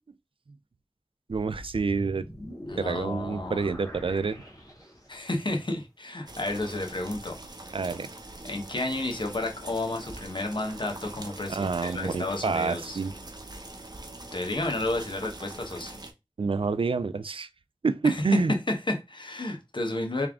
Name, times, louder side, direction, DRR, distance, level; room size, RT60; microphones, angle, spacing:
sound 1, 1.3-5.3, equal, 40° left, 1.9 m, -42 dB
voice 1, 1.3-2.2 2.8-4.4 7.7-8.1 11.5-13.1 16.4-17.5 17.8-18.5, right 4 dB, 75° right, 0.4 m, -28 dB
voice 2, 2.7-3.6 5.1-7.3 8.4-13.0 14.3-16.0 18.0-18.2 18.7-20.3, left 2 dB, 60° left, 1.1 m, -31 dB
sound 2, 6.3-16.1, right 2 dB, 50° right, 0.9 m, -43 dB
3.5 x 3.4 x 3.6 m
wide cardioid pair, 40°, 9 cm